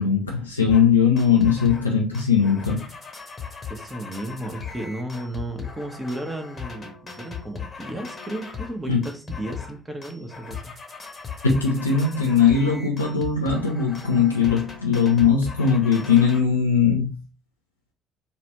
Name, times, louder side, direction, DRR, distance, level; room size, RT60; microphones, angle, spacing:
voice 1, 0.0-2.9 8.9-9.0 11.4-17.1, left 6 dB, 85° left, 0.4 m, -20 dB
sound 1, 0.7-0.9 1.2-1.9 2.1-8.8 9.0-9.8 10.0-16.4, left 6 dB, 30° left, 1.0 m, -38 dB
voice 2, 3.7-10.7, right 1 dB, 15° right, 1.0 m, -34 dB
3.1 x 2.4 x 3.0 m
figure-of-eight pair, 50°, 0 cm